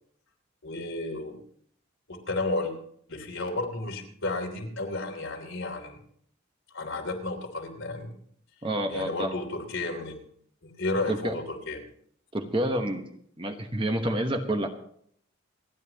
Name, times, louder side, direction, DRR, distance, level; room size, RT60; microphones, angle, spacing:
voice 1, 0.6-1.4 2.1-2.7 3.1-6.0 6.7-8.2 8.9-10.2 10.6-11.8, left 2 dB, 70° left, 2 dB, 3.1 m, -32 dB
voice 2, 8.6-9.3 11.1-11.3 12.3-13.1 13.4-14.7, right 1 dB, 25° right, 5 dB, 1.1 m, -28 dB
28.0 x 10.5 x 2.9 m, 0.64 s
head